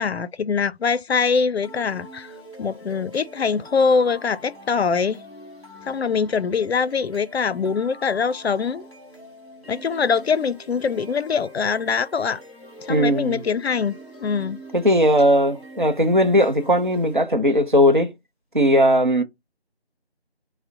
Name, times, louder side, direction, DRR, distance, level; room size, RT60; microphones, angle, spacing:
voice 1, 0.0-2.3 2.6-5.2 5.9-8.9 9.7-12.4 12.8-14.6, left 5 dB, 75° left, 0.5 m, -23 dB
sound 1, 1.6-17.6, equal, 5° right, 2.1 m, -44 dB
voice 2, 12.9-13.4 14.7-18.1 18.5-19.2, equal, 50° right, 0.6 m, -18 dB
6.1 x 2.0 x 2.7 m
figure-of-eight pair, 175°, 32 cm